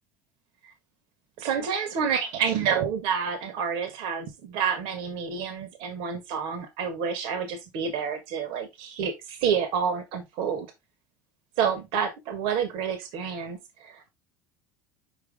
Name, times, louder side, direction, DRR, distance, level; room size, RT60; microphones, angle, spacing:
voice 1, 1.4-10.7 11.6-14.1, right 7 dB, 60° right, 1.6 m, -29 dB
5.7 x 5.5 x 3.5 m
hypercardioid pair, 70°, 10 cm